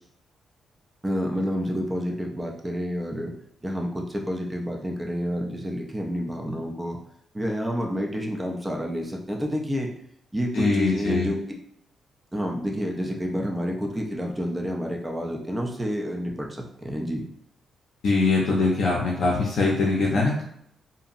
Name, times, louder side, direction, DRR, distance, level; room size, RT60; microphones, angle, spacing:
voice 1, 1.0-3.3 3.6-7.0 7.3-9.9 10.3-11.4 12.3-17.2, equal, 10° right, 0 dB, 0.4 m, -29 dB
voice 2, 10.5-11.3 18.0-20.4, left 3 dB, 60° left, -4 dB, 0.5 m, -22 dB
2.8 x 2.6 x 2.4 m, 0.70 s
wide cardioid pair, 175°, 0 cm